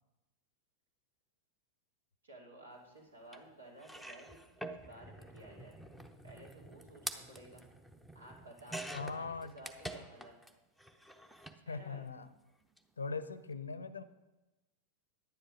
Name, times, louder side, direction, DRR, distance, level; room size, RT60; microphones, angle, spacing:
voice 1, 2.2-5.8 6.2-7.6 8.1-10.4 11.6-12.1, right 1 dB, 75° right, -1 dB, 2.7 m, -54 dB
sound 1, 3.3-3.4 3.8-10.5 10.8-11.6 12.6-12.8 13.0-13.1, right 1 dB, 5° right, 0.8 m, -47 dB
voice 2, 8.9-9.6 11.7-12.3 13.0-14.0, left 4 dB, 75° left, 15 dB, 0.6 m, -40 dB
10.5 x 10.0 x 5.0 m, 1.1 s
figure-of-eight pair, 90°, 0 cm